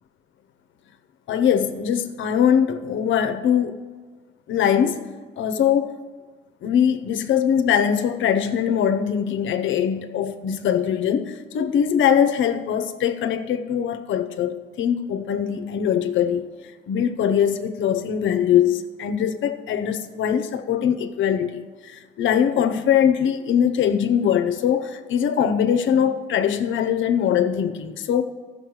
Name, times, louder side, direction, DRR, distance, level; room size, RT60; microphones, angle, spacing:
voice 1, 1.3-3.8 4.5-5.1 5.4-6.0 6.6-16.5 16.9-28.2, left 8 dB, 75° left, 0.8 m, -22 dB
13.5 x 6.8 x 4.8 m
cardioid pair, 90°, 20 cm